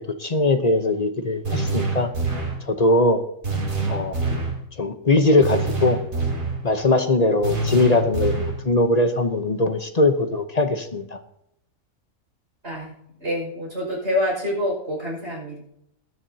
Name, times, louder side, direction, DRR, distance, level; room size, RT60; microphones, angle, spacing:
voice 1, 0.2-2.1 2.7-3.2 3.9-4.2 4.8-6.0 6.6-11.2, left 2 dB, 35° left, 7 dB, 0.9 m, -20 dB
sound 1, 1.4-2.6 3.4-4.6 5.4-6.6 7.4-8.6, right 3 dB, 80° right, 3.3 m, -25 dB
voice 2, 12.6-15.6, left 1 dB, 50° right, -2 dB, 6.0 m, -27 dB
18.5 x 10.5 x 2.8 m, 0.75 s
omnidirectional pair, 1.4 m